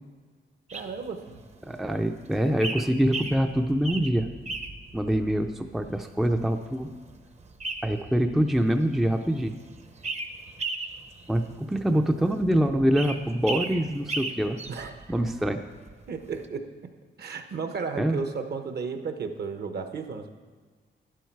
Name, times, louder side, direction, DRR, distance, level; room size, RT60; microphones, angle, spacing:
sound 1, 0.7-16.5, right 3 dB, 35° right, 0.8 m, -38 dB
voice 1, 0.7-1.4 14.7-15.1 16.1-16.6 17.2-20.3, right 5 dB, 55° right, 7 dB, 1.0 m, -34 dB
voice 2, 1.6-4.3 4.9-6.9 7.8-9.6 11.3-14.6 15.1-15.6 18.0-18.2, equal, ahead, 6 dB, 0.4 m, -25 dB
12.0 x 11.0 x 4.6 m, 1.5 s
wide cardioid pair, 160°, 20 cm